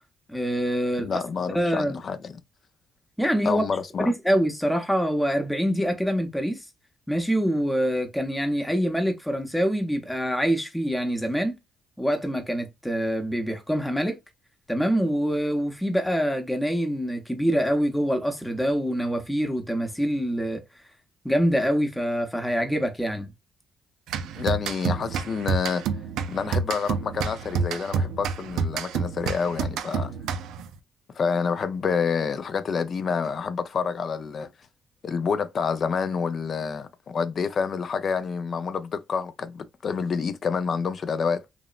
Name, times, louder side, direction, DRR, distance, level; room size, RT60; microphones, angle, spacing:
voice 1, 0.3-1.2 1.5-2.0 3.2-3.6 4.0-6.6 7.1-11.6 12.0-14.2 14.7-20.6 21.2-23.3, equal, 5° left, 0.7 m, -25 dB
voice 2, 1.0-2.4 3.4-4.1 24.4-25.8 26.3-30.1 31.1-34.5 35.0-41.4, left 5 dB, 50° left, 0.4 m, -28 dB
sound 1, 24.1-30.7, right 5 dB, 85° right, 0.3 m, -29 dB
2.9 x 2.0 x 2.3 m
cardioid pair, 90°, 0 cm